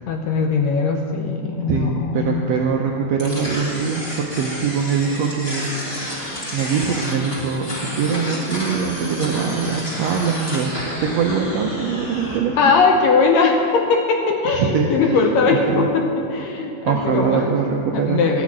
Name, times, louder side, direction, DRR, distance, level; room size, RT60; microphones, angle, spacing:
voice 1, 0.1-2.4 12.6-17.5 17.9-18.4, left 4 dB, 75° left, 3 dB, 1.7 m, -19 dB
voice 2, 1.7-10.7 11.0-12.7 14.5-15.2 15.7-15.9 16.8-18.2, right 6 dB, 80° right, 1 dB, 1.5 m, -23 dB
sound 1, 3.2-12.4, equal, 20° left, 1.8 m, -30 dB
11.5 x 6.1 x 8.6 m, 2.8 s
omnidirectional pair, 3.6 m